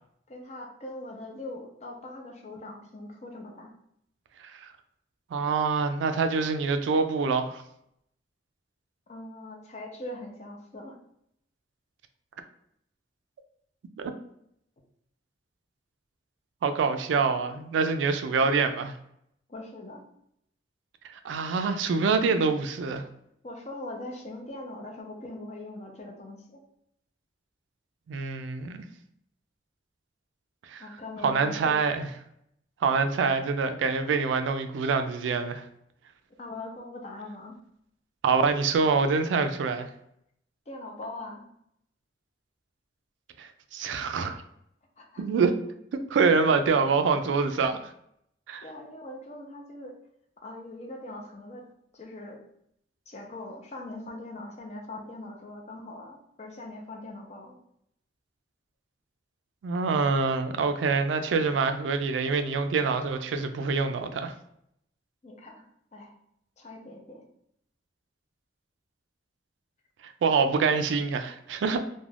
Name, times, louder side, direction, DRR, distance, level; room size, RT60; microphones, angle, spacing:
voice 1, 0.3-3.7 9.1-11.0 19.5-20.0 23.4-26.6 30.8-31.9 36.4-37.6 40.7-41.5 45.0-45.2 48.6-49.9 50.4-51.7 51.9-52.4 53.1-57.6 65.2-65.6 65.9-66.2 66.6-67.2 71.7-71.8, left 2 dB, 40° left, 1 dB, 0.5 m, -41 dB
voice 2, 5.3-7.6 14.0-14.1 16.6-19.0 21.1-23.0 28.1-28.8 30.7-30.8 31.2-32.1 32.8-35.6 38.2-39.9 43.4-44.4 45.2-45.6 46.1-47.9 48.5-48.6 59.6-64.3 70.0-71.8, right 4 dB, 85° right, 8 dB, 0.3 m, -25 dB
2.4 x 2.1 x 3.2 m, 0.73 s
head